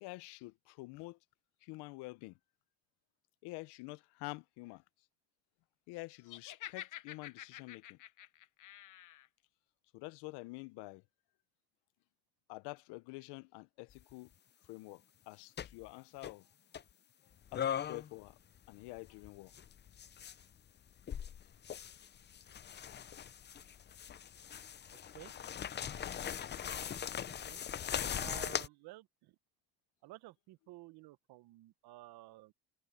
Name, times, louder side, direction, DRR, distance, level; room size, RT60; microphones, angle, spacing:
voice 1, 0.0-1.2 1.6-2.3 3.4-4.8 5.9-8.0 9.9-11.0 12.5-14.3 14.7-16.4 17.5-18.4 18.7-19.5 21.8-21.9, left 23 dB, 85° left, 0.7 m, -48 dB
Laughter, 6.3-9.3, left 13 dB, 50° left, 0.9 m, -49 dB
sound 1, 13.9-14.1 15.6-15.9 16.2-16.3 16.7-16.8 17.5-18.3 18.6-20.4 21.0-28.7, left 9 dB, 25° left, 0.5 m, -40 dB
voice 2, 24.9-25.3 27.3-27.6 28.2-29.4 30.0-32.5, right 17 dB, 70° right, 1.0 m, -53 dB
cardioid pair, 110°, 40 cm